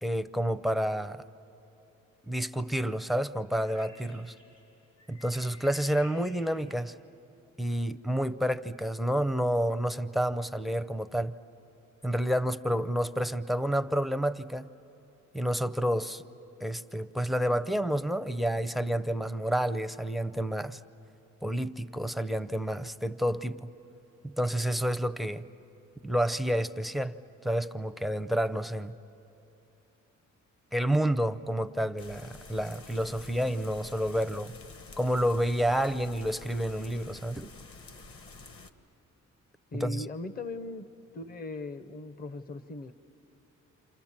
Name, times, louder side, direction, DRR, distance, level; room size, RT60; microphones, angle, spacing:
voice 1, 0.0-1.2 2.2-4.3 5.1-6.9 7.6-11.3 12.0-14.7 15.3-16.2 16.6-20.8 21.4-23.7 24.4-25.4 26.0-27.1 27.4-28.9 30.7-34.5 35.0-37.5 39.8-40.0, equal, ahead, 15 dB, 0.6 m, -29 dB
sound 1, 3.5-6.8, left 3 dB, 80° left, 5.1 m, -54 dB
sound 2, 32.0-38.7, left 3 dB, 45° left, 1.5 m, -49 dB
voice 2, 39.7-40.9 41.1-42.9, left 2 dB, 30° left, 12 dB, 0.8 m, -39 dB
29.0 x 27.5 x 7.4 m, 3.0 s
cardioid pair, 90°, 30 cm